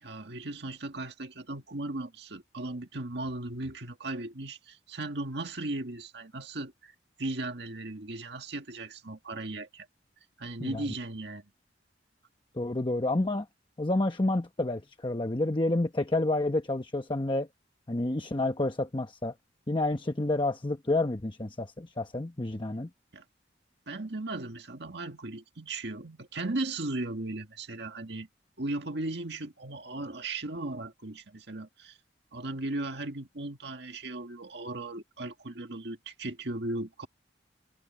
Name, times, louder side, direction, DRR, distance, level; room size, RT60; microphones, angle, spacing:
voice 1, 0.0-6.9 7.2-9.9 10.4-11.5 23.1-23.2 23.9-28.3 28.6-32.0 32.3-37.1, right 2 dB, 65° right, 1.9 m, -37 dB
voice 2, 12.5-13.5 13.8-17.5 17.9-19.3 19.7-22.9, left 2 dB, 25° left, 1.0 m, -29 dB
head